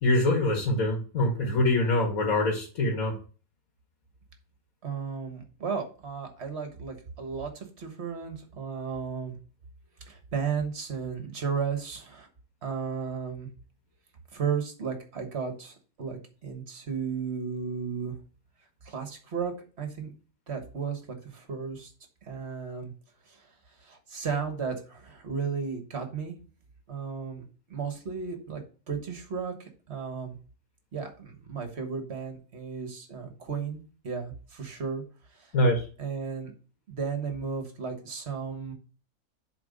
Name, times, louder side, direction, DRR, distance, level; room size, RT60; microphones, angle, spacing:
voice 1, 0.0-3.1 35.5-35.8, left 1 dB, 70° left, 2 dB, 1.9 m, -24 dB
voice 2, 4.8-9.4 10.1-12.3 12.6-13.5 14.3-18.1 18.8-19.5 19.8-20.1 20.5-21.9 22.2-22.9 23.3-23.5 23.8-26.4 26.9-28.6 28.9-30.4 30.9-33.8 34.0-35.0 35.3-35.5 36.0-36.5 36.9-38.7, right 6 dB, 50° right, 5 dB, 1.5 m, -34 dB
7.8 x 3.8 x 5.2 m, 0.38 s
omnidirectional pair, 1.5 m